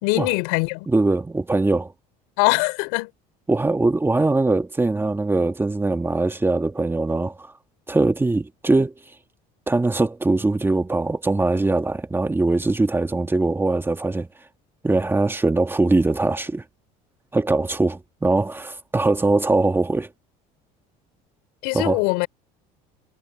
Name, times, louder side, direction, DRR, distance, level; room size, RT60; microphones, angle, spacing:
voice 1, 0.0-0.9 2.4-3.1 21.6-22.3, left 26 dB, 85° left, 4.2 m, -22 dB
voice 2, 0.9-1.9 3.5-7.5 7.9-8.9 9.7-14.3 14.8-16.6 17.3-20.1 21.7-22.0, right 2 dB, 15° right, 1.9 m, -21 dB
supercardioid pair, 105°, 18 cm